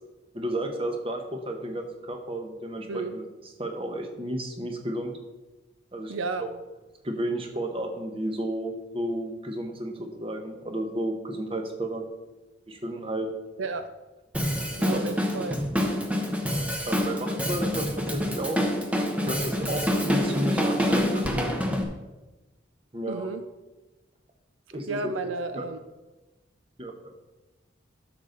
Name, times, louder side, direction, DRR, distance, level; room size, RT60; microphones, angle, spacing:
voice 1, 0.3-3.2 3.6-5.1 5.9-6.1 6.4-6.5 7.0-12.0 12.7-13.3 14.8-15.0 16.9-18.6 19.2-21.5 22.9-23.3 24.7-25.1 25.5-25.7 26.8-27.1, right 1 dB, 25° right, 4 dB, 1.0 m, -32 dB
voice 2, 6.1-6.4 13.6-13.9 14.8-15.6 23.1-23.5 24.9-25.8, right 3 dB, 75° right, 10 dB, 0.5 m, -32 dB
Drum kit, 14.3-21.8, equal, 5° right, 0.8 m, -26 dB
11.0 x 6.7 x 3.9 m, 1.1 s
head